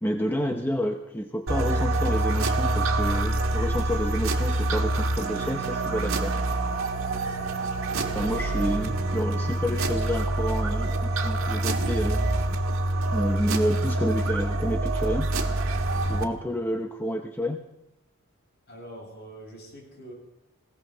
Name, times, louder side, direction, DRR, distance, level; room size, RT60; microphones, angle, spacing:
voice 1, 0.0-6.4 8.1-12.3 13.1-15.3 16.1-17.6, equal, 10° left, 4 dB, 0.7 m, -29 dB
sound 1, 1.5-16.2, right 2 dB, 70° right, 1.6 m, -26 dB
voice 2, 7.8-8.2 18.7-20.1, right 1 dB, 50° left, -2 dB, 7.3 m, -44 dB
20.5 x 17.5 x 3.9 m, 0.87 s
head